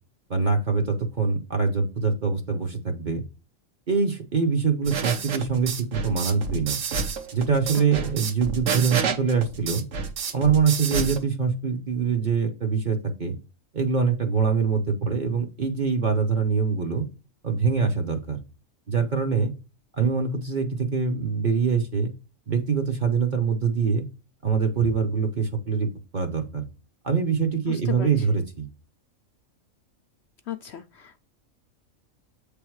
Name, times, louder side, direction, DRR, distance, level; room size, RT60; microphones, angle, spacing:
voice 1, 0.3-3.2 3.9-6.8 7.3-9.8 10.3-13.3 13.7-17.0 17.4-18.4 18.9-19.5 20.0-22.1 22.5-24.0 24.4-26.7 27.0-28.7, right 5 dB, 40° right, 5 dB, 0.9 m, -24 dB
sound 1, 4.9-11.2, right 6 dB, 60° right, 1.1 m, -29 dB
voice 2, 27.7-28.1 30.5-31.2, left 9 dB, 65° left, 8 dB, 0.8 m, -35 dB
8.1 x 3.6 x 4.6 m, 0.31 s
omnidirectional pair, 1.5 m